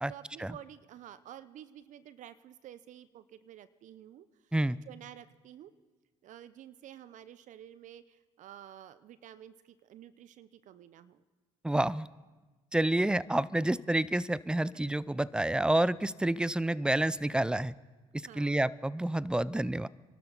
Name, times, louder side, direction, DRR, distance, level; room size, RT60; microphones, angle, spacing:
voice 1, 0.1-4.5 4.9-5.7 6.2-11.2 18.2-18.6, right 11 dB, 60° right, 15 dB, 0.6 m, -51 dB
voice 2, 11.6-12.1 12.7-17.7 18.1-19.9, right 1 dB, 5° right, 20 dB, 0.5 m, -29 dB
27.0 x 12.5 x 3.9 m, 1.2 s
hypercardioid pair, 65°, 14 cm